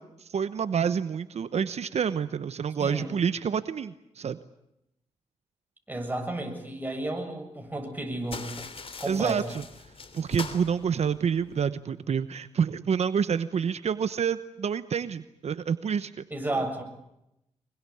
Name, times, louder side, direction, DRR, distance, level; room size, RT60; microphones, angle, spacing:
voice 1, 0.0-4.4 9.1-9.6 10.1-16.2 16.5-16.6, right 7 dB, 65° right, 13 dB, 0.9 m, -28 dB
voice 2, 2.8-3.1 5.9-8.7 9.0-9.5 16.3-16.8, right 1 dB, 15° right, 3 dB, 7.1 m, -32 dB
sound 1, 8.3-11.7, left 4 dB, 55° left, 3.1 m, -42 dB
24.5 x 22.5 x 8.6 m, 0.85 s
cardioid pair, 70°, 12 cm